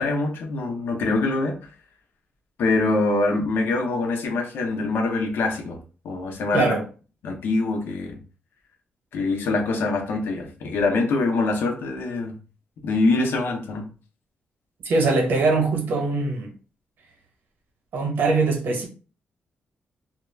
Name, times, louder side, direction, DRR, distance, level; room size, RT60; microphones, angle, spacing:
voice 1, 0.0-1.6 2.6-5.8 6.0-6.7 7.2-8.2 9.1-12.4 12.8-13.9, left 3 dB, 75° left, 0.6 m, -24 dB
voice 2, 14.8-16.5 17.9-18.9, right 3 dB, 70° right, 0.7 m, -22 dB
2.3 x 2.0 x 3.1 m
wide cardioid pair, 175°, 4 cm